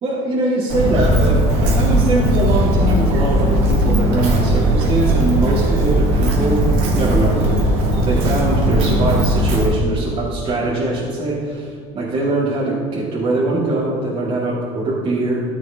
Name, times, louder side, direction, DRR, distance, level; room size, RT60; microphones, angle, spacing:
voice 1, 0.0-6.6 6.9-7.7 8.1-15.5, right 2 dB, 40° right, -7 dB, 2.0 m, -22 dB
Walk footsteps, 0.7-9.7, right 1 dB, 75° right, 2.1 m, -17 dB
14.0 x 7.5 x 2.8 m, 2.3 s
supercardioid pair, 110°, 15 cm